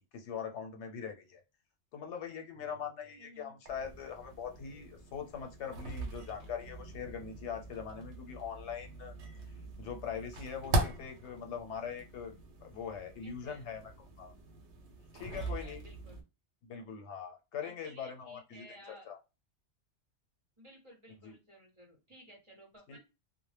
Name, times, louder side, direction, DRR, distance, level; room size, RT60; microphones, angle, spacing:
voice 1, 0.1-1.4 1.9-9.1 9.8-13.8 14.2-14.3 15.1-15.8 16.6-18.6 19.1-19.2 21.2-21.3 22.9-23.0, left 7 dB, 85° left, 4 dB, 0.9 m, -42 dB
voice 2, 3.2-3.6 13.2-13.7 15.1-16.2 17.6-19.1 20.6-23.0, equal, 30° right, -1 dB, 0.8 m, -56 dB
sound 1, 3.6-16.2, right 2 dB, 80° right, 0.9 m, -41 dB
2.1 x 2.0 x 3.2 m, 0.27 s
omnidirectional pair, 1.1 m